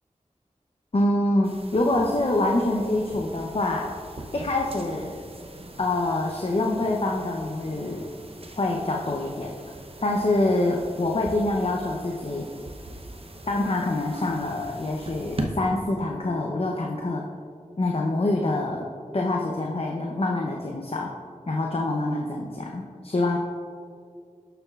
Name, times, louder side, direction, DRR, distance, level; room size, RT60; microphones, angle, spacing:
voice 1, 0.9-3.9 4.3-5.1 5.8-8.1 8.5-9.7 10.0-12.5 13.5-17.3 17.8-18.8 19.1-21.1 21.5-23.4, left 2 dB, 50° left, 0 dB, 0.7 m, -25 dB
sound 1, 1.4-15.5, right 2 dB, 45° right, 0.8 m, -41 dB
11.5 x 6.9 x 2.4 m, 2.2 s
wide cardioid pair, 60°, 13 cm